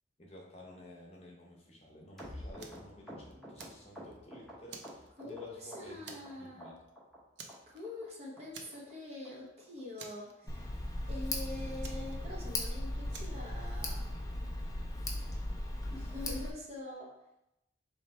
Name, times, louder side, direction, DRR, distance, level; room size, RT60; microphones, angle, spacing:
voice 1, 0.2-6.7, equal, 35° left, -2 dB, 0.8 m, -52 dB
sound 1, 2.2-5.4 5.7-6.3 6.6-7.2 7.5-7.6 7.8-8.1 8.4-8.5 8.7-8.9 9.2-9.3 9.6-9.8 10.1-10.2 10.5-10.7 11.0-11.1 11.4-11.6 11.9-12.0, equal, ahead, 1.0 m, -48 dB
Fire, 2.6-2.9 3.3-4.2 4.7-5.6 6.1-6.5 6.8-6.9 7.4-8.1 8.5-9.1 9.4-9.5 10.0-10.8 11.8-12.6 13.1-13.5, right 5 dB, 70° right, 0.5 m, -50 dB
voice 2, 5.2-6.7 7.7-10.6 11.1-14.0 15.9-17.2, left 2 dB, 35° right, -2 dB, 0.8 m, -45 dB
Tick, 10.5-16.5, left 1 dB, 20° left, 0.5 m, -37 dB
3.3 x 3.2 x 4.3 m, 0.85 s
head